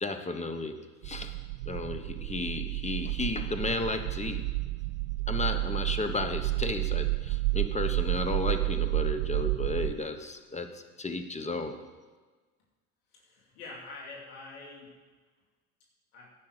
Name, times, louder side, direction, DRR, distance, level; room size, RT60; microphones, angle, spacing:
voice 1, 0.0-1.3 1.7-4.5 5.3-11.8, left 2 dB, 15° left, 7 dB, 1.1 m, -33 dB
sound 1, 1.0-9.9, right 21 dB, 65° right, 0.6 m, -31 dB
voice 2, 13.1-14.9 16.1-16.3, left 3 dB, 70° left, -2 dB, 3.1 m, -45 dB
10.5 x 7.6 x 6.7 m, 1.4 s
hypercardioid pair, 85°, 43 cm